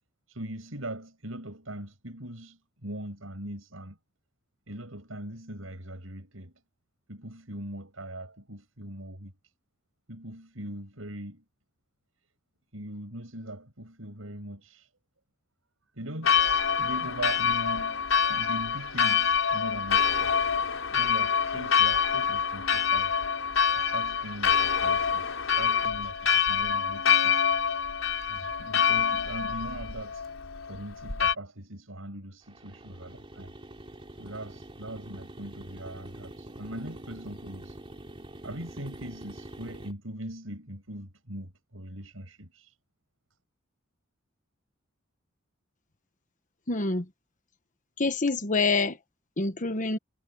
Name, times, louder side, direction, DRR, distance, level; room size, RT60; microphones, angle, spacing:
voice 1, 0.3-4.0 4.7-6.5 7.1-9.3 10.1-11.4 12.7-14.9 15.9-20.4 20.9-23.2 23.8-27.5 28.2-30.3 30.7-33.5 34.1-37.8 38.4-42.8, right 1 dB, 85° right, 7.1 m, -41 dB
Church bell, 16.2-31.3, left 7 dB, 90° left, 4.2 m, -26 dB
sound 1, 32.5-39.9, right 1 dB, 30° right, 2.7 m, -45 dB
voice 2, 46.7-47.0 48.0-49.0 49.4-50.0, left 3 dB, 40° left, 1.3 m, -26 dB
head